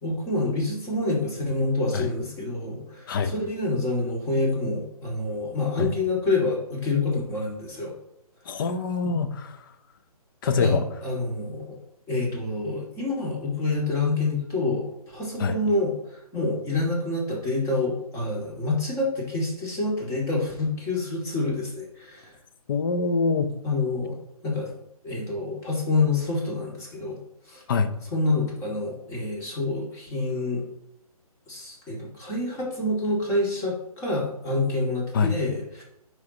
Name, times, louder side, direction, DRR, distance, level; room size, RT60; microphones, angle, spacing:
voice 1, 0.0-7.9 10.6-11.8 12.1-22.3 23.6-24.2 24.4-24.7 25.0-27.2 27.5-27.6 28.1-30.6 31.5-35.8, left 2 dB, 15° left, -3 dB, 2.2 m, -27 dB
voice 2, 8.5-9.6 10.4-10.9 15.4-15.5 22.7-23.5 27.7-27.9 35.1-35.3, left 4 dB, 35° left, 9 dB, 0.7 m, -24 dB
10.5 x 4.6 x 2.9 m, 0.80 s
figure-of-eight pair, 140°, 20 cm